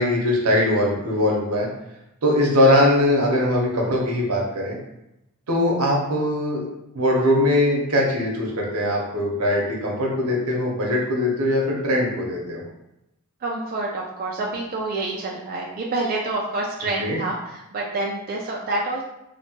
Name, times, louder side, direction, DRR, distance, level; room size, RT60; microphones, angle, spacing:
voice 1, 0.0-1.7 2.2-4.8 5.5-6.7 6.9-12.6 17.0-17.2, left 1 dB, 85° right, -2 dB, 0.8 m, -21 dB
voice 2, 13.4-19.0, right 2 dB, 40° right, -2 dB, 0.3 m, -27 dB
2.9 x 2.1 x 2.8 m, 0.87 s
head